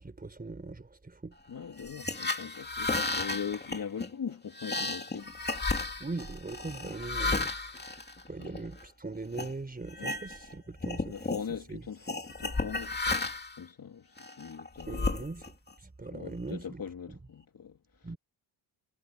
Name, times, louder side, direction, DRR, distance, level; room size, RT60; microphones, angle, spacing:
voice 1, 0.0-1.4 6.0-7.5 8.3-11.8 14.9-15.5 15.8-16.8 17.1-17.2 18.0-18.2, right 3 dB, 20° right, 4.9 m, -40 dB
voice 2, 1.5-5.3 8.4-8.5 10.0-10.1 11.1-15.2 16.1-17.8, left 7 dB, 50° left, 3.2 m, -41 dB
sound 1, 1.8-8.8 9.3-9.5 9.9-10.5 10.8-11.5 12.1-13.6 14.2-15.7, left 3 dB, 20° left, 2.9 m, -33 dB
wide cardioid pair, 130°, 44 cm